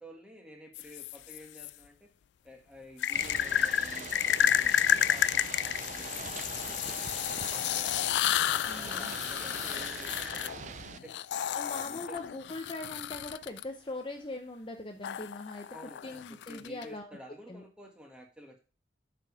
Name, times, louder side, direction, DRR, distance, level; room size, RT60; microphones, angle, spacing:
voice 1, 0.0-2.1 2.4-8.1 8.6-11.1 11.8-12.2 15.7-18.6, equal, 5° right, 1 dB, 1.6 m, -52 dB
sound 1, 0.7-1.7 3.0-13.6 15.0-16.8, left 10 dB, 75° left, 0.3 m, -31 dB
Ocean / Boat Water vehicle, 3.1-11.0, right 6 dB, 40° right, 0.3 m, -43 dB
voice 2, 8.6-9.1 11.5-15.7 16.0-17.1 17.5-17.6, left 2 dB, 30° left, 4 dB, 0.7 m, -41 dB
7.4 x 5.2 x 4.8 m, 0.33 s
head